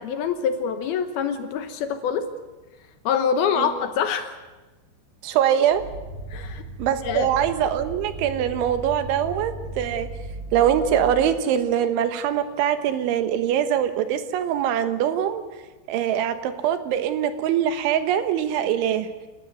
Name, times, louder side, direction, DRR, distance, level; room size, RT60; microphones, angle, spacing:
voice 1, 0.0-2.3 3.0-4.4 6.3-6.6 7.0-7.3, left 7 dB, 70° left, 8 dB, 2.6 m, -25 dB
voice 2, 5.2-5.8 6.8-10.1 10.5-15.4 15.9-19.1, right 9 dB, 90° right, 10 dB, 3.7 m, -23 dB
sound 1, 5.7-11.5, right 2 dB, 35° right, 3.2 m, -36 dB
29.0 x 12.5 x 9.4 m, 1.2 s
omnidirectional pair, 5.3 m